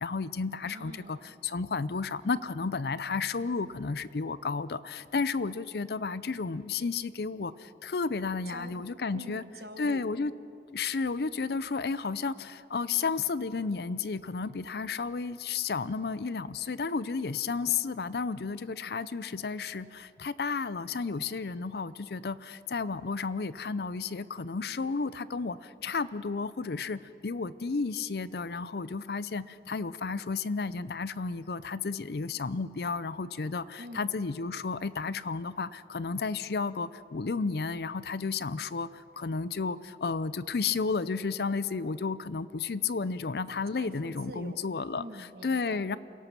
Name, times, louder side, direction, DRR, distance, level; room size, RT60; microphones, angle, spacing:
voice 1, 0.0-0.9 1.5-4.7 5.1-7.5 7.9-9.4 9.8-10.3 10.8-12.3 12.7-15.3 15.7-18.6 18.9-19.8 20.4-22.3 22.7-25.5 25.8-27.0 27.2-29.4 29.7-33.6 34.0-35.7 35.9-36.9 37.1-38.9 39.2-39.7 40.0-45.0 45.4-46.0, left 4 dB, 60° left, 16 dB, 0.5 m, -32 dB
voice 2, 0.6-1.3 8.5-8.8 9.1-10.1 33.8-34.2 43.7-45.8, right 1 dB, 60° right, 7 dB, 1.4 m, -46 dB
28.0 x 17.5 x 5.9 m, 2.7 s
head